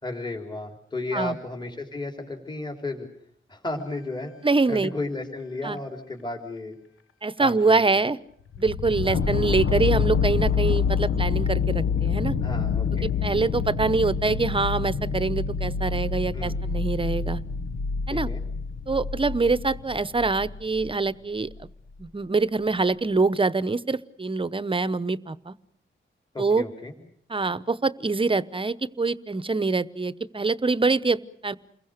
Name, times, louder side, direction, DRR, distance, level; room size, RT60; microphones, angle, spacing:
voice 1, 0.0-3.1 3.5-4.3 4.7-6.8 7.4-8.0 9.0-9.2 12.4-13.1 16.3-16.6 18.1-18.4 26.3-26.9, left 2 dB, 20° left, 2 dB, 4.1 m, -33 dB
voice 2, 4.4-4.9 5.6-5.8 7.2-8.2 8.6-12.4 13.2-17.4 18.1-18.3 18.9-21.7 22.0-25.5 26.4-26.6 27.3-31.5, right 3 dB, 25° right, 16 dB, 0.9 m, -25 dB
sound 1, 8.5-20.9 21.5-21.6, left 6 dB, 80° left, 1.2 m, -27 dB
29.0 x 22.0 x 6.6 m, 0.64 s
wide cardioid pair, 145°, 21 cm